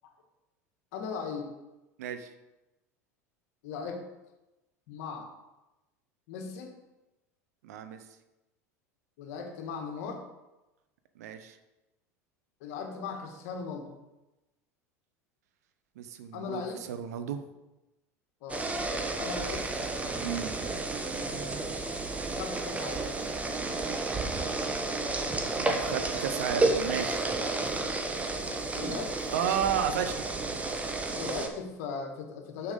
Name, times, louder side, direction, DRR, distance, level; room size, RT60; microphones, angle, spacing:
voice 1, 0.9-1.5 3.6-4.0 4.9-5.3 6.3-6.7 9.2-10.2 12.6-14.0 16.3-16.8 18.4-18.7 19.2-19.6 21.2-21.7 22.4-23.1 25.5-26.0 28.5-29.1 31.2-32.7, left 5 dB, 70° left, 3 dB, 1.6 m, -38 dB
voice 2, 2.0-2.3 7.6-8.0 11.2-11.6 16.0-16.6 16.9-17.4 20.2-20.5 25.6-27.2 29.3-30.2 30.5-30.6, right 8 dB, 75° right, 9 dB, 0.8 m, -32 dB
sound 1, 18.5-31.5, right 3 dB, 15° right, 1.0 m, -31 dB
6.4 x 5.9 x 5.3 m, 1.0 s
hypercardioid pair, 85°, 9 cm